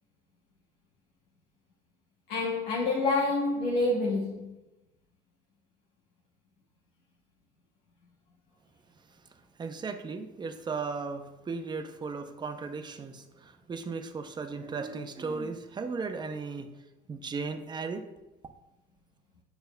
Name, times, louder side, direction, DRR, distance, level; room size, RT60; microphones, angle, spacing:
voice 1, 2.3-4.5, left 2 dB, 85° left, 0.9 m, -27 dB
voice 2, 9.6-16.7 17.1-18.0, right 4 dB, 25° right, 0.6 m, -36 dB
6.8 x 6.7 x 2.2 m
cardioid pair, 110°, 17 cm